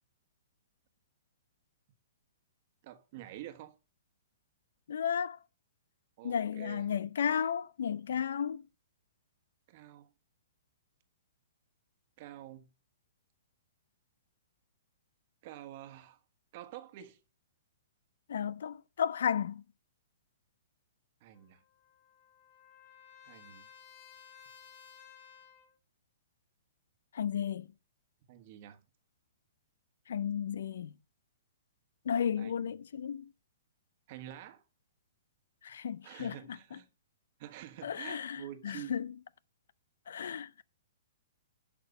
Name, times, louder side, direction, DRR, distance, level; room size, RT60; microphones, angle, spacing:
voice 1, 2.8-3.8 6.2-6.9 8.1-8.2 9.7-10.1 12.2-12.7 15.4-16.2 16.5-17.2 21.2-21.6 23.2-23.7 28.3-28.8 32.4-32.7 34.1-34.6 36.0-36.9 37.4-39.0 40.2-40.3, right 13 dB, 40° right, 1.3 m, -48 dB
voice 2, 4.9-5.4 6.2-8.6 18.3-19.6 27.1-27.7 30.1-30.9 32.1-33.3 35.6-36.4 37.8-39.1 40.1-40.6, left 8 dB, 75° left, 0.5 m, -33 dB
Trumpet, 21.3-25.7, left 8 dB, 40° left, 5.3 m, -56 dB
11.0 x 6.0 x 5.1 m
hypercardioid pair, 155°, 0 cm